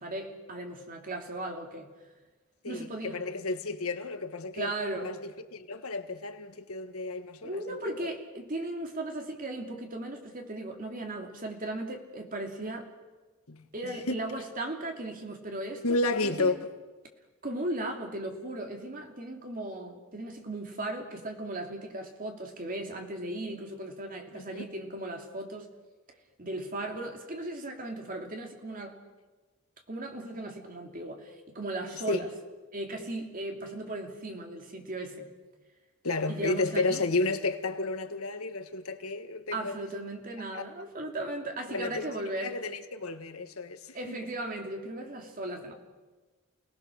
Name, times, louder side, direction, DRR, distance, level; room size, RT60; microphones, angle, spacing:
voice 1, 0.0-1.9 2.7-3.2 4.5-5.1 7.4-12.9 13.7-16.0 16.2-16.6 17.4-25.7 26.4-29.0 29.9-32.3 32.7-35.3 36.3-37.0 39.5-42.6 43.9-45.7, right 1 dB, 40° right, 2.8 m, -37 dB
voice 2, 2.6-4.7 5.0-7.9 13.5-13.6 14.1-14.2 15.8-16.7 24.3-24.7 32.1-32.3 36.0-40.1 40.5-40.6 41.7-42.1 42.4-44.2, left 3 dB, 85° left, 1.6 m, -32 dB
29.5 x 19.0 x 6.5 m
head